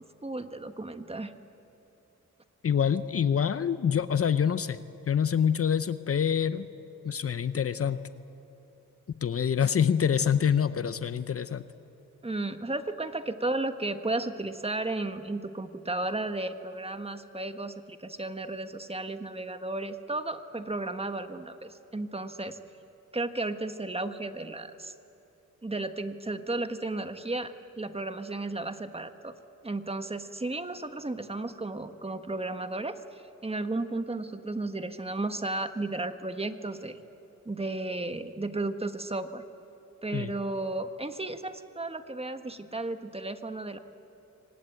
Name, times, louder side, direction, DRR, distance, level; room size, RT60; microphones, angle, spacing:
voice 1, 0.2-1.3 12.2-22.6 23.1-24.9 25.6-29.3 29.6-37.0 37.4-39.4 40.0-43.8, right 2 dB, 20° right, 8 dB, 1.5 m, -34 dB
voice 2, 2.6-4.8 5.1-6.7 7.0-8.0 9.2-11.6 40.1-40.3, left 8 dB, 45° left, 13 dB, 0.8 m, -26 dB
25.5 x 19.0 x 9.0 m, 3.0 s
cardioid pair, 70°, 31 cm